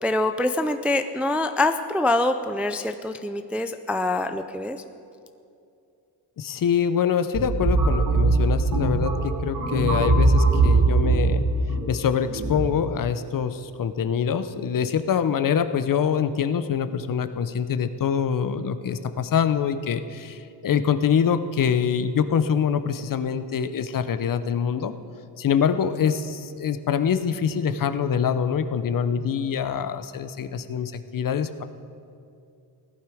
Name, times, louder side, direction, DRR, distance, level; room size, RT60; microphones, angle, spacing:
voice 1, 0.0-4.8, left 2 dB, 5° right, 7 dB, 0.3 m, -25 dB
voice 2, 6.4-11.4 11.9-24.9 25.4-31.6, left 7 dB, 50° left, 10 dB, 0.7 m, -25 dB
sound 1, 7.3-12.7, right 3 dB, 60° right, 3.5 m, -21 dB
17.0 x 11.5 x 4.9 m, 2.6 s
cardioid pair, 110°, 44 cm